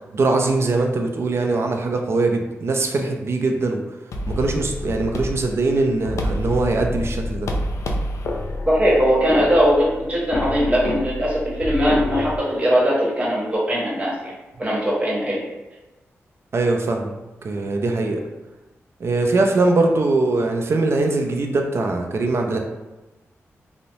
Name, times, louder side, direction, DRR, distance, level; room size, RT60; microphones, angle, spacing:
voice 1, 0.1-3.8 4.3-7.5 16.5-17.2 17.4-18.2 19.0-22.6, right 3 dB, 55° right, 3 dB, 0.4 m, -21 dB
sound 1, 4.1-12.4, left 2 dB, 70° left, 0.3 m, -28 dB
voice 2, 8.7-14.3 14.6-15.4, equal, 25° right, -5 dB, 1.0 m, -20 dB
2.9 x 2.0 x 2.7 m, 1.1 s
cardioid pair, 65°, 5 cm